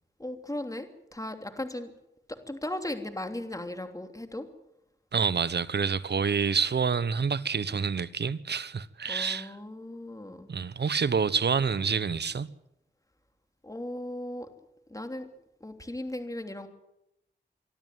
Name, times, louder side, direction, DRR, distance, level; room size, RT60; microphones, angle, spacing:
voice 1, 0.2-1.9 2.3-4.5 9.1-10.5 13.6-14.5 14.9-15.3 15.6-16.7, left 1 dB, 15° left, 3.2 m, -37 dB
voice 2, 5.1-9.5 10.5-12.5, right 6 dB, 60° right, 1.1 m, -27 dB
25.0 x 12.5 x 9.4 m
cardioid pair, 55°, 19 cm